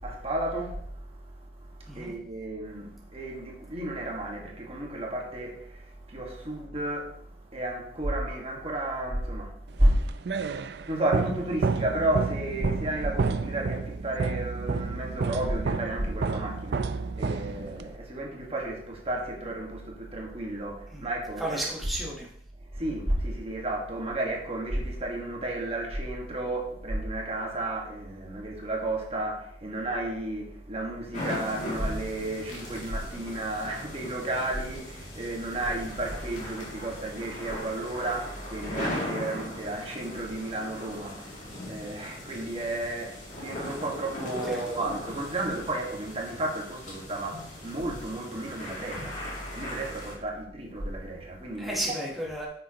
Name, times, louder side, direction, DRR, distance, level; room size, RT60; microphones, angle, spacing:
voice 1, 0.0-10.1 10.9-21.6 22.6-49.3 49.5-51.8, right 1 dB, 35° right, 1.6 m, -32 dB
sound 1, 9.8-18.0, right 4 dB, 65° right, 0.4 m, -30 dB
voice 2, 21.4-22.3 44.4-44.6 51.6-52.5, right 1 dB, ahead, 1.1 m, -33 dB
sound 2, 31.1-50.1, left 1 dB, 45° left, 2.5 m, -39 dB
9.4 x 6.4 x 2.9 m
head